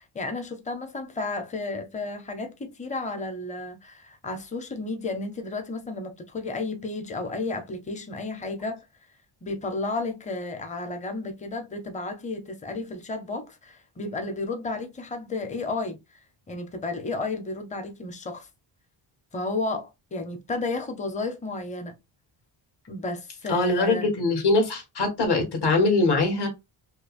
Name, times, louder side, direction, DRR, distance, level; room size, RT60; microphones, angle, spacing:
voice 1, 0.0-8.8 9.4-16.2 16.5-18.5 19.3-22.0 22.9-24.1, left 3 dB, 15° left, 0.6 m, -32 dB
voice 2, 23.5-26.5, left 3 dB, 55° left, 1.6 m, -22 dB
5.4 x 2.0 x 2.4 m
wide cardioid pair, 145°, 49 cm